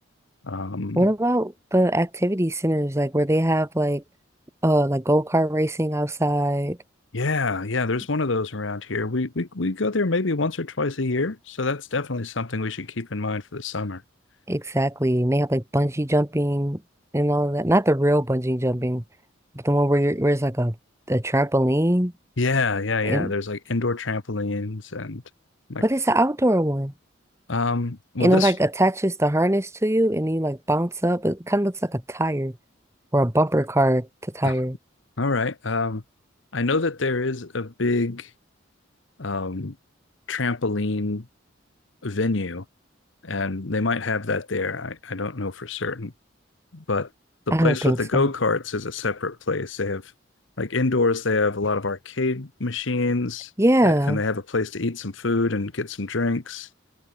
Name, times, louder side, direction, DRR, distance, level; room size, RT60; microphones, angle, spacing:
voice 1, 0.4-1.1 7.1-14.0 22.4-25.2 25.7-25.8 27.5-28.5 34.4-34.5 35.2-36.0 36.5-38.3 39.2-39.7 40.3-41.3 42.0-42.6 43.2-46.1 46.7-47.1 47.5-50.0 50.6-53.5 53.8-56.7, left 3 dB, 75° left, 1.2 m, -26 dB
voice 2, 0.9-4.0 4.6-6.8 14.5-16.8 17.1-19.0 19.6-20.7 21.1-22.1 23.0-23.3 25.8-26.9 28.2-32.5 33.1-34.1 34.3-34.8 47.5-48.3 53.6-54.2, right 1 dB, 15° right, 1.6 m, -22 dB
head